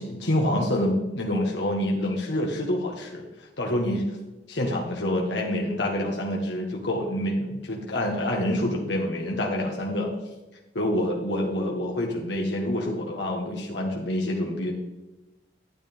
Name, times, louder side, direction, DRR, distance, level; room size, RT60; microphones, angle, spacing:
voice 1, 0.0-3.2 3.6-4.2 4.5-10.1 10.7-14.7, left 1 dB, 75° left, -1 dB, 1.5 m, -27 dB
11.5 x 10.0 x 3.5 m, 1.0 s
head